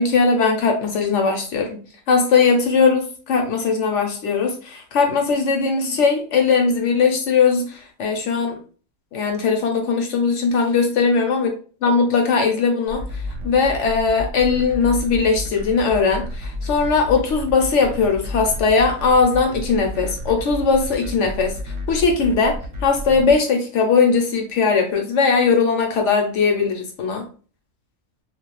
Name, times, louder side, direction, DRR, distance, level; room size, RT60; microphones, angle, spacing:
voice 1, 0.0-1.8 2.1-8.6 9.1-11.5 11.8-13.0 13.4-21.6 21.9-27.3, left 5 dB, 70° left, 3 dB, 0.9 m, -19 dB
sound 1, 12.9-23.3, left 1 dB, 70° right, 1.0 m, -31 dB
2.5 x 2.2 x 3.0 m, 0.39 s
omnidirectional pair, 1.4 m